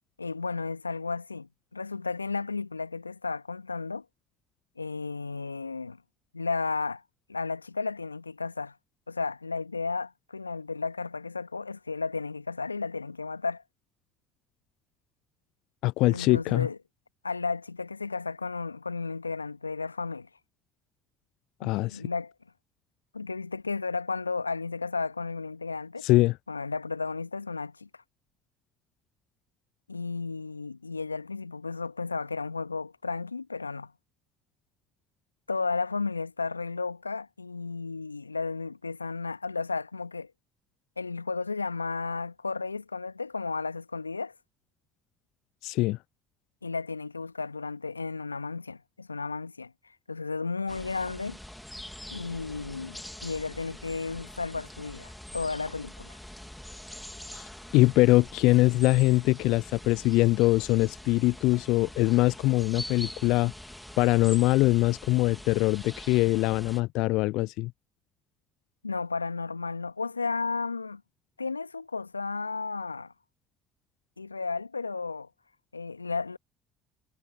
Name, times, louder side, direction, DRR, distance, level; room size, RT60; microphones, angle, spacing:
voice 1, 0.2-4.0 4.8-6.0 6.3-7.0 7.3-8.8 9.1-13.6 16.1-16.8 17.2-20.3 21.6-22.3 23.1-26.1 26.5-28.0 29.9-33.9 35.5-40.3 41.0-44.3 46.6-49.7 50.1-51.4 52.1-53.0 53.2-56.2 68.8-71.0 71.4-73.1 74.2-75.3 75.7-76.4, left 4 dB, 90° left, 2.1 m, -33 dB
voice 2, 15.8-16.7 21.6-22.0 26.0-26.4 45.6-46.0 57.3-57.4 57.7-63.5 64.0-67.7, left 20 dB, 60° left, 0.5 m, -23 dB
sound 1, 50.7-66.8, left 1 dB, 5° left, 3.3 m, -44 dB
figure-of-eight pair, 55°, 0 cm